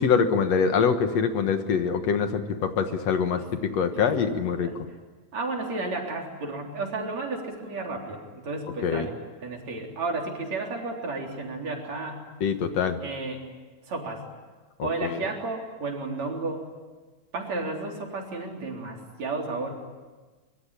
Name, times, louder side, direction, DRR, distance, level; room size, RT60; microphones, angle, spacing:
voice 1, 0.0-4.7 8.8-9.1 12.4-13.0 14.8-15.2, left 6 dB, 65° left, 8 dB, 2.4 m, -24 dB
voice 2, 5.3-9.1 9.4-12.3 13.0-13.4 13.9-14.2 14.8-16.7 17.3-19.7, right 3 dB, 65° right, 1 dB, 4.9 m, -32 dB
24.0 x 23.5 x 10.0 m, 1.3 s
omnidirectional pair, 3.4 m